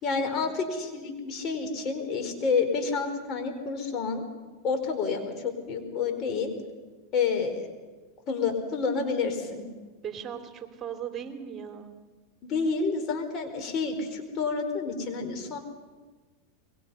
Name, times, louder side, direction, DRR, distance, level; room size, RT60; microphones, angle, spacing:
voice 1, 0.0-4.2 4.6-6.5 7.1-7.7 8.3-9.7 12.4-15.6, left 5 dB, 40° left, 5 dB, 4.6 m, -29 dB
voice 2, 10.0-11.9, right 8 dB, 30° right, 7 dB, 3.0 m, -38 dB
26.5 x 22.5 x 5.7 m, 1.3 s
hypercardioid pair, 100°, 0 cm